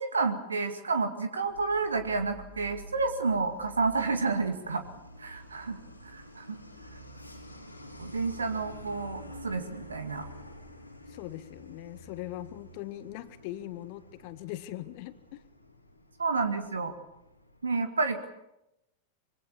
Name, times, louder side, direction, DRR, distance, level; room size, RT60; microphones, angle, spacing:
voice 1, 0.0-4.8 5.2-5.8 6.1-6.6 8.0-10.3 16.2-16.9 17.6-18.3, right 4 dB, 75° right, 7 dB, 2.2 m, -30 dB
Truck, 1.4-17.6, equal, 90° left, 3.3 m, -49 dB
voice 2, 11.1-15.4, left 15 dB, 45° left, 13 dB, 1.5 m, -41 dB
25.0 x 23.0 x 7.1 m, 0.90 s
figure-of-eight pair, 90°, 0 cm